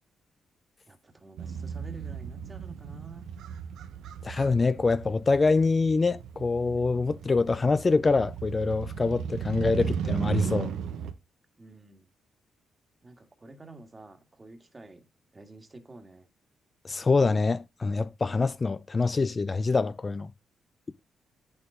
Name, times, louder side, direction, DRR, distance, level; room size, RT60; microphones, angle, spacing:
voice 1, 0.9-3.3 11.6-12.1 13.0-15.1 15.3-16.3, right 2 dB, 25° right, 1.9 m, -49 dB
Motorcycle, 1.4-11.1, right 8 dB, 85° right, 1.1 m, -36 dB
voice 2, 4.2-10.7 16.8-20.3, left 4 dB, 35° left, 0.5 m, -25 dB
8.7 x 6.9 x 3.8 m
cardioid pair, 70°, 0 cm